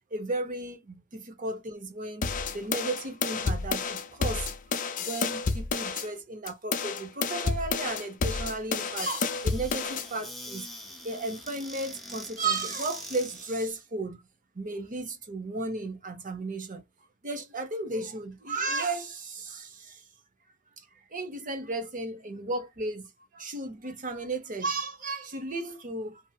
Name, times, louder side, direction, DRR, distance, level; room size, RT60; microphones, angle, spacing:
voice 1, 0.1-4.5 5.0-10.7 11.0-14.2 14.5-16.8 17.2-20.0 20.8-20.9 21.1-26.2, right 2 dB, 40° right, 0.8 m, -34 dB
sound 1, 2.2-6.1 6.5-10.1, left 4 dB, 40° left, 0.5 m, -30 dB
Squeak / Cupboard open or close, 8.7-13.6, left 1 dB, ahead, 0.7 m, -44 dB
2.7 x 2.6 x 2.4 m
head